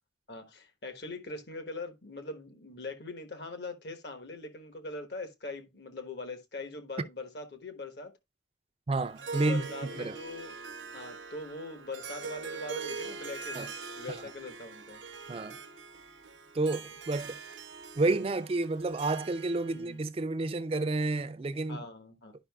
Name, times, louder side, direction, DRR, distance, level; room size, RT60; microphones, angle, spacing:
voice 1, 0.3-8.1 9.3-10.5 10.9-13.7 14.0-15.0 19.7-20.0 21.7-22.3, left 2 dB, 60° left, 1.1 m, -42 dB
voice 2, 8.9-9.7 10.0-10.1 13.5-13.7 14.1-14.2 15.3-15.6 16.5-17.4 18.0-21.8, right 2 dB, 30° right, 0.4 m, -30 dB
Harp, 9.0-19.9, right 4 dB, 80° right, 0.8 m, -43 dB
11.0 x 5.5 x 2.3 m
head